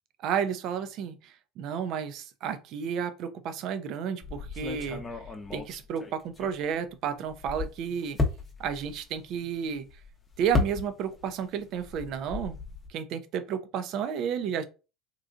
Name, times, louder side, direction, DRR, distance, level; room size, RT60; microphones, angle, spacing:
voice 1, 0.2-5.0 5.5-8.2 8.6-9.9 10.4-12.6 12.9-14.6, right 7 dB, 60° right, 0.4 m, -32 dB
sound 1, 4.2-6.9 7.3-11.3 11.6-12.9, left 3 dB, 20° left, 0.7 m, -34 dB
3.0 x 2.3 x 2.5 m
hypercardioid pair, 70°, 0 cm